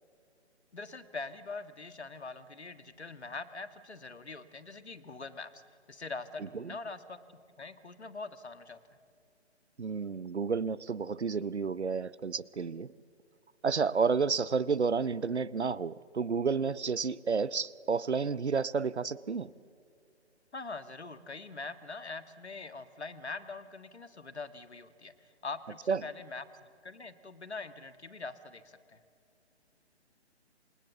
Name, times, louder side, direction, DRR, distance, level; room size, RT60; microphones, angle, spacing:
voice 1, 0.7-5.6 5.9-7.2 7.6-8.8 20.5-26.5 26.8-29.0, left 3 dB, 70° left, 1.8 m, -43 dB
voice 2, 9.8-12.9 13.6-19.5 25.9-26.0, right 5 dB, 75° right, 0.8 m, -31 dB
27.5 x 26.5 x 7.3 m
figure-of-eight pair, 140°, 34 cm